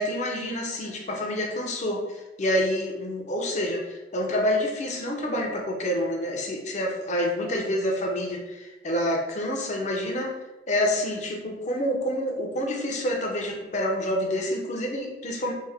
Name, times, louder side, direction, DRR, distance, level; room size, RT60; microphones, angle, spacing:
voice 1, 0.0-10.4 10.7-15.5, left 1 dB, 40° left, 0 dB, 0.6 m, -28 dB
3.2 x 2.0 x 3.4 m, 1.0 s
head